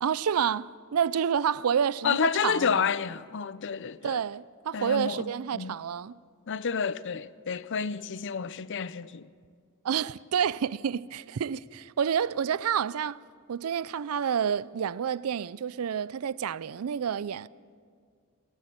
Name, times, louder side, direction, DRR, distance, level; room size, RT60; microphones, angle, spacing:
voice 1, 0.0-2.2 2.4-2.9 4.0-6.2 9.8-13.2 13.5-17.5, right 8 dB, 80° right, 0.4 m, -29 dB
voice 2, 2.0-4.2 4.7-5.8 6.5-9.3, left 6 dB, 55° left, 0.5 m, -30 dB
18.5 x 16.5 x 8.8 m
head